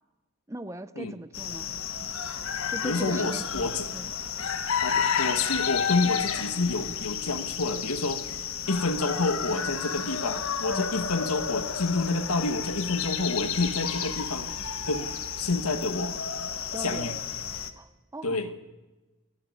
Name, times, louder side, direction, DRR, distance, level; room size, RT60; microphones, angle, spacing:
voice 1, 0.5-1.7 2.7-4.1 10.7-11.0 16.7-17.1 17.8-18.5, right 1 dB, 15° right, 11 dB, 0.7 m, -39 dB
sound 1, 1.3-17.7, left 7 dB, 70° left, 1.4 m, -31 dB
voice 2, 2.8-3.9 4.8-8.2 8.7-14.5 14.8-16.2 16.8-17.2 18.2-18.5, left 3 dB, 85° left, 8 dB, 1.7 m, -29 dB
28.5 x 11.0 x 9.7 m, 1.2 s
head